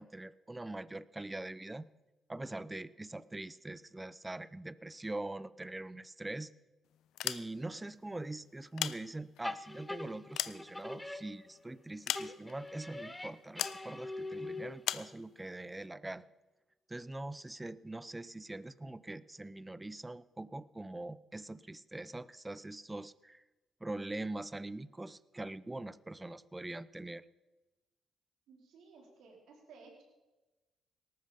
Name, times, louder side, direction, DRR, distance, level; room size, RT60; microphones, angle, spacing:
voice 1, 0.0-1.9 2.3-6.5 7.2-16.3 16.9-23.4 23.8-27.2, right 2 dB, 15° right, 18 dB, 0.6 m, -43 dB
sound 1, 7.0-7.9 8.5-9.5 10.0-11.3 12.1-12.7 13.6-13.9 14.8-15.1, left 12 dB, 80° left, 0.6 m, -38 dB
sound 2, 9.4-11.8 12.1-15.0, left 2 dB, 10° left, 1.1 m, -43 dB
voice 2, 28.5-30.0, right 4 dB, 80° right, 0 dB, 4.4 m, -57 dB
18.5 x 13.5 x 5.2 m, 1.1 s
cardioid pair, 90°, 0 cm